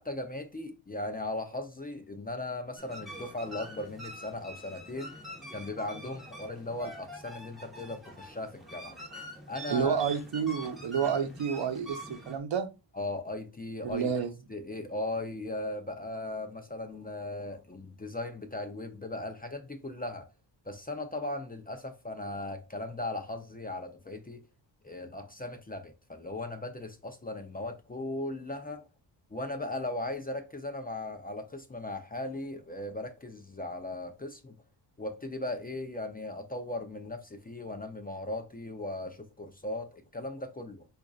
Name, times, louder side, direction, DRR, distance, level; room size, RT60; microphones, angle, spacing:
voice 1, 0.0-5.2 5.5-9.0 9.5-10.0 12.9-14.1 14.5-20.3 20.7-24.4 24.8-28.8 29.3-34.5 35.0-40.9, left 2 dB, 20° left, 0.4 m, -38 dB
sound 1, 2.8-12.4, right 1 dB, ahead, 1.1 m, -45 dB
voice 2, 9.7-12.7 13.8-14.3, right 7 dB, 75° right, 0.8 m, -30 dB
5.0 x 2.5 x 2.3 m
wide cardioid pair, 145°, 45 cm